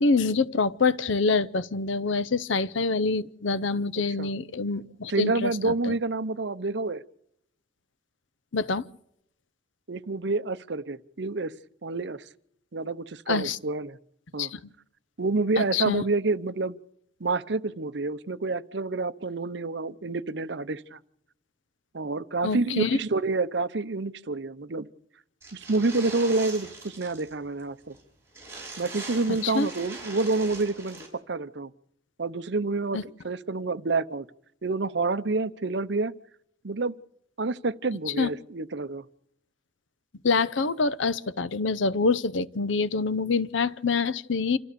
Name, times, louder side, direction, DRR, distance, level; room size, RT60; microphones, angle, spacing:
voice 1, 0.0-5.9 8.5-8.9 13.3-13.6 14.4-14.6 15.6-16.0 22.4-23.0 29.4-29.7 32.9-33.0 38.2-38.3 40.2-44.6, left 4 dB, 80° left, 0.7 m, -26 dB
voice 2, 5.1-7.0 9.9-11.5 11.8-12.2 12.7-14.0 14.3-14.5 15.2-16.8 17.2-21.0 21.9-24.9 25.5-28.0 28.8-31.7 32.2-34.3 34.6-36.1 36.6-36.9 37.4-39.0, right 3 dB, 65° right, 0.7 m, -28 dB
sound 1, 25.4-27.3 27.6-27.7 27.9-28.0 28.3-31.1, right 3 dB, 15° right, 5.9 m, -41 dB
27.0 x 14.0 x 6.9 m
head